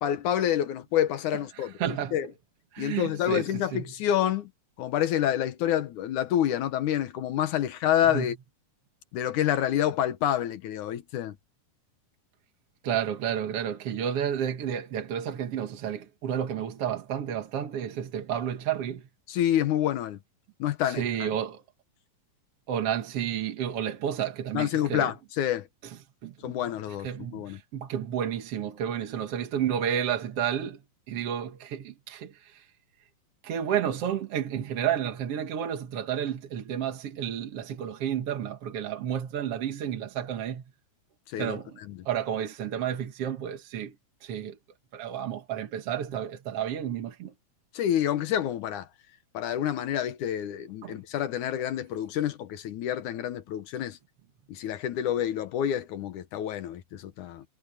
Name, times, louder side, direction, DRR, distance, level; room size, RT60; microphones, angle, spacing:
voice 1, 0.0-1.7 2.1-2.3 2.8-4.5 4.8-8.4 9.1-11.3 19.3-20.2 20.6-21.3 24.5-25.7 26.4-27.6 41.3-41.6 41.9-42.0 47.7-48.9 49.3-54.0 54.5-57.4, left 11 dB, 70° left, 2.5 m, -28 dB
voice 2, 1.5-2.2 2.7-3.8 8.1-8.3 12.8-19.0 20.9-21.6 22.7-25.1 25.8-26.6 27.0-30.8 31.1-32.7 33.4-40.6 41.4-41.8 42.1-43.9 44.2-44.6 44.9-47.3 50.8-51.0, right 9 dB, 55° right, 2.1 m, -31 dB
omnidirectional pair, 3.7 m